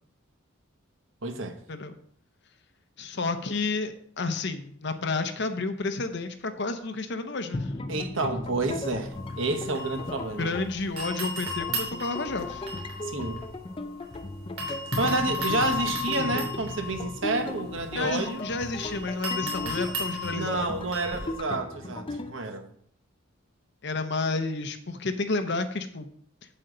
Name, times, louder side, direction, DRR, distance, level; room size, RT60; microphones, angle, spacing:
voice 1, 1.2-1.5 7.9-9.1 9.4-10.5 13.0-13.4 15.0-18.4 20.3-22.6, right 3 dB, 65° right, 6 dB, 1.2 m, -29 dB
voice 2, 3.0-7.7 10.4-12.7 17.9-20.7 23.8-26.1, left 3 dB, 55° left, 8 dB, 0.7 m, -31 dB
sound 1, 7.5-22.3, left 2 dB, 25° left, 0.4 m, -36 dB
sound 2, 9.1-10.6 11.0-14.2 14.6-21.4, left 2 dB, 85° right, 3.2 m, -35 dB
8.5 x 7.9 x 3.9 m, 0.64 s
head